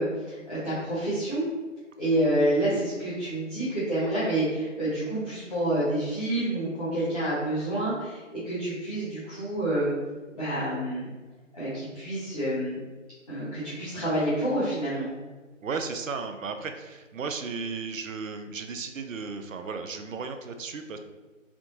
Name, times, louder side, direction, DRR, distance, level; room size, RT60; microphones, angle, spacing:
voice 1, 0.0-1.4 2.0-9.9 10.3-11.1 11.5-12.8 13.3-15.1, right 1 dB, 30° left, -12 dB, 0.8 m, -28 dB
voice 2, 15.6-21.0, right 5 dB, 75° right, 7 dB, 0.5 m, -35 dB
3.4 x 2.6 x 2.6 m, 1.3 s
figure-of-eight pair, 155°, 39 cm